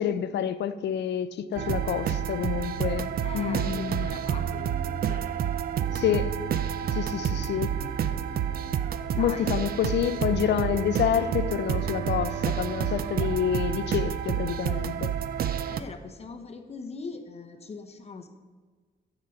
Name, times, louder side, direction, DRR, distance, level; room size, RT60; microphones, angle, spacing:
voice 1, 0.0-4.1 5.9-6.4 6.9-7.7 9.2-15.1, left 9 dB, 75° left, 0.4 m, -28 dB
sound 1, 1.5-15.8, right 9 dB, 55° right, 0.4 m, -29 dB
voice 2, 3.2-5.2 7.1-8.6 9.1-9.6 15.7-18.3, left 4 dB, 35° left, 0.6 m, -42 dB
9.6 x 4.0 x 5.7 m
wide cardioid pair, 135°, 18 cm